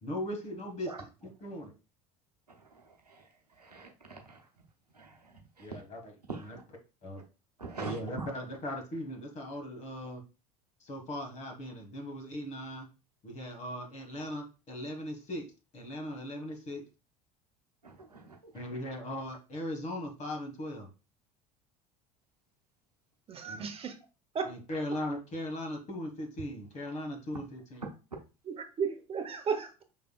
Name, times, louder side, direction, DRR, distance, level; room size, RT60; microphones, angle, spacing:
voice 1, 0.0-0.9 1.4-1.7 5.6-6.0 7.0-7.2 7.8-10.2 10.8-12.9 13.2-15.5 15.7-16.8 18.5-20.9 23.5-23.7 24.5-27.8, left 1 dB, 35° left, 3 dB, 1.6 m, -38 dB
voice 2, 2.5-4.7 4.9-5.8 6.3-6.6 7.6-8.3 17.8-18.6, right 3 dB, 90° right, 2 dB, 0.7 m, -44 dB
voice 3, 23.3-23.9 24.3-24.5 28.5-29.8, right 6 dB, 30° right, 7 dB, 0.8 m, -34 dB
5.5 x 3.4 x 2.3 m, 0.31 s
figure-of-eight pair, 65°, 20 cm